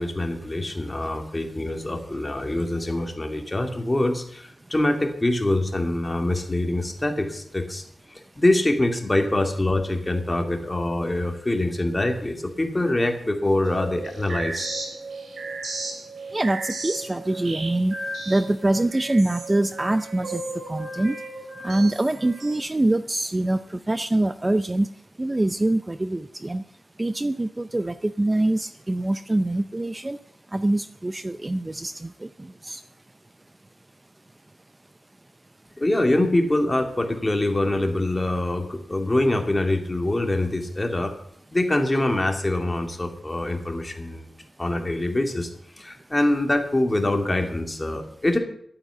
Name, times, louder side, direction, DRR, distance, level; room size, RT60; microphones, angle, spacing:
voice 1, 0.0-7.8 8.4-14.7 35.8-41.1 41.5-44.3 44.6-45.5 45.8-48.4, left 1 dB, 20° left, 4 dB, 2.4 m, -24 dB
sound 1, 13.6-22.6, right 2 dB, 90° right, 3.8 m, -35 dB
voice 2, 16.3-18.0 18.3-20.4 20.7-21.1 21.6-24.9 25.2-26.6 27.0-30.2 30.5-32.1 32.6-32.8, right 1 dB, 20° right, 11 dB, 0.5 m, -24 dB
12.5 x 8.9 x 8.2 m, 0.66 s
wide cardioid pair, 115°, 0 cm